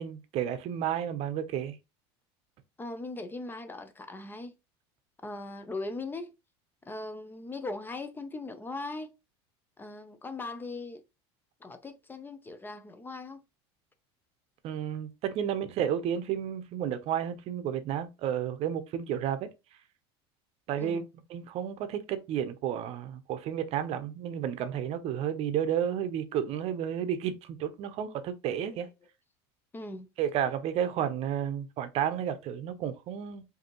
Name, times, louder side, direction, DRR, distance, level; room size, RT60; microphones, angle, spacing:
voice 1, 0.0-1.7 14.6-19.5 20.7-28.9 30.2-33.4, right 9 dB, 50° right, 0.7 m, -32 dB
voice 2, 2.8-4.5 5.2-6.3 6.9-9.1 9.8-11.0 11.6-13.4 20.8-21.0 28.7-28.8 29.7-30.1 30.4-30.5, left 2 dB, 15° left, 0.5 m, -39 dB
5.0 x 2.7 x 2.9 m
supercardioid pair, 110°, 13 cm